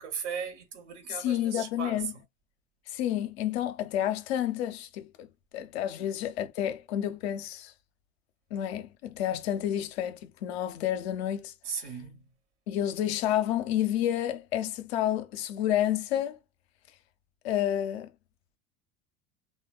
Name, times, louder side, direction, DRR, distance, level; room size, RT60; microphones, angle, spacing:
voice 1, 0.0-2.1 6.0-6.1 11.6-12.2, right 6 dB, 65° right, 1.0 m, -37 dB
voice 2, 1.1-2.1 2.9-5.3 5.5-7.7 8.5-11.5 12.7-16.4 17.4-18.1, left 11 dB, 55° left, 0.5 m, -30 dB
3.2 x 2.1 x 2.2 m
figure-of-eight pair, 75°, 38 cm